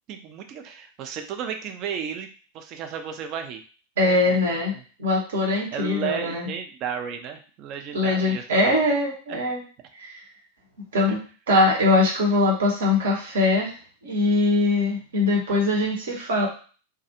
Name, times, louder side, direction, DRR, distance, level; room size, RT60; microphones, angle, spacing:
voice 1, 0.1-2.3 2.5-3.6 4.0-4.4 4.7-4.8 5.7-8.8 9.3-9.4, right 7 dB, 40° right, 5 dB, 0.4 m, -33 dB
voice 2, 4.0-4.7 5.0-6.5 7.9-9.6 9.9-10.3 10.9-13.7 14.0-16.5, left 2 dB, 60° right, -1 dB, 0.9 m, -22 dB
2.3 x 2.3 x 2.8 m, 0.38 s
figure-of-eight pair, 90°, 0 cm